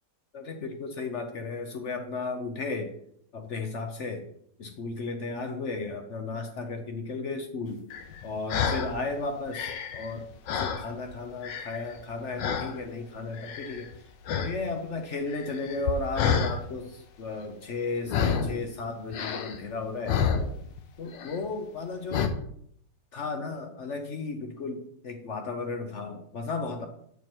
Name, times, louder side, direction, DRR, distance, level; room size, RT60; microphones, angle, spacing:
voice 1, 0.3-2.9 3.3-4.3 4.6-7.8 8.2-10.3 10.6-13.9 14.3-20.2 21.0-22.4 23.1-26.9, left 3 dB, 55° left, 5 dB, 0.8 m, -34 dB
sound 1, 7.9-8.9 9.4-11.2 11.4-12.0 12.4-12.8 13.3-13.9 14.2-14.6 14.8-16.6 18.1-18.6 19.1-20.8 21.1-21.5 22.1-22.3, left 7 dB, 80° left, 1.4 m, -29 dB
8.1 x 4.7 x 4.5 m, 0.68 s
omnidirectional pair, 2.0 m